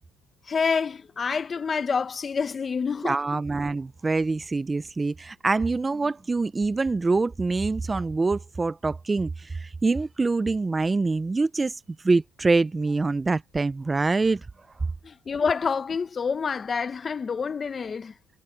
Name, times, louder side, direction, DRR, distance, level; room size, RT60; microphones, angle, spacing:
voice 1, 0.5-3.2 15.0-18.1, left 5 dB, 25° left, 0.9 m, -27 dB
voice 2, 3.0-14.4, right 3 dB, 15° right, 0.5 m, -25 dB
cardioid pair, 125°, 0 cm